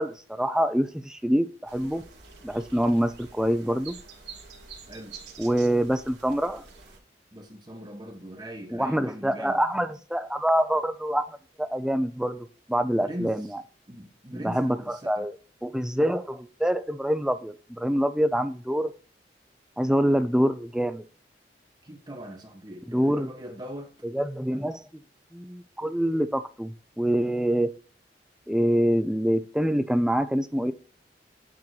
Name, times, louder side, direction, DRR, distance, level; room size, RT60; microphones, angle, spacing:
voice 1, 0.0-2.0 2.4-4.0 5.4-6.6 8.7-13.5 14.3-15.3 15.6-18.9 19.8-21.0 22.9-23.3 24.0-24.8 25.3-27.7 28.5-30.7, equal, 5° right, 0.4 m, -25 dB
sound 1, 1.7-7.0, right 5 dB, 85° right, 2.0 m, -47 dB
voice 2, 7.3-9.6 12.9-13.3 13.9-15.3 21.8-24.0 24.5-24.7, equal, 25° right, 1.2 m, -41 dB
8.8 x 3.0 x 3.9 m
head